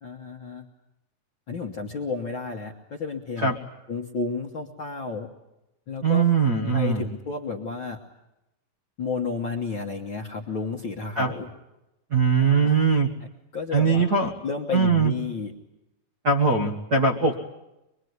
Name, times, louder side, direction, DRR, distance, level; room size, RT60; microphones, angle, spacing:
voice 1, 0.0-0.6 1.5-3.5 3.9-5.3 5.9-6.2 6.7-8.0 9.0-11.5 12.3-12.9 13.2-14.0 14.4-15.5, left 4 dB, 55° left, 1 dB, 1.4 m, -32 dB
voice 2, 6.0-7.0 11.2-11.3 12.1-13.1 13.7-14.3 14.7-15.1 16.2-17.3, right 5 dB, 60° right, 2 dB, 1.0 m, -21 dB
23.5 x 23.0 x 9.5 m, 0.93 s
omnidirectional pair, 4.2 m